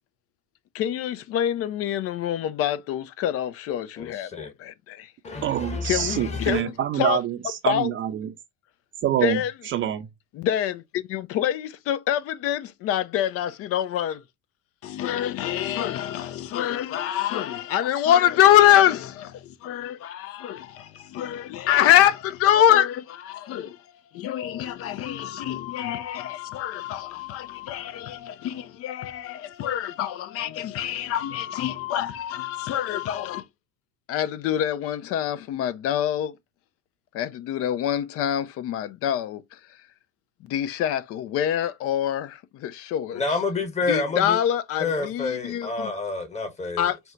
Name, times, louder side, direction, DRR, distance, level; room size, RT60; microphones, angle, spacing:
voice 1, 0.7-5.1 5.8-7.2 7.7-7.9 9.2-9.5 10.3-14.2 14.8-23.8 24.1-33.4 34.1-36.3 37.1-39.4 40.5-43.2 43.9-45.9 46.8-47.0, left 11 dB, 45° left, 0.6 m, -25 dB
voice 2, 4.0-4.5 5.2-6.6 43.1-44.4 44.8-47.1, left 3 dB, 20° left, 1.3 m, -29 dB
voice 3, 5.4-8.3 9.0-10.1, right 11 dB, 35° right, 0.6 m, -26 dB
4.3 x 2.2 x 3.8 m
hypercardioid pair, 95°, 33 cm